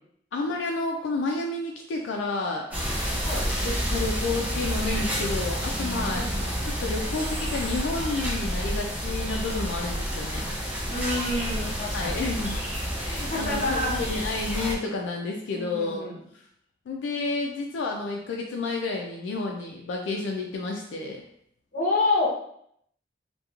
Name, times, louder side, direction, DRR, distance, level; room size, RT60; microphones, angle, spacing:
voice 1, 0.3-3.1 3.6-10.4 11.9-12.6 13.0-16.1 16.9-21.2, left 3 dB, 80° left, 1 dB, 0.3 m, -30 dB
sound 1, 2.7-14.7, equal, 10° right, 0.5 m, -29 dB
voice 2, 6.1-6.6 10.9-12.2 13.3-14.0 15.5-16.2 21.7-22.3, left 2 dB, 40° left, -3 dB, 0.7 m, -28 dB
2.9 x 2.2 x 2.3 m, 0.69 s
head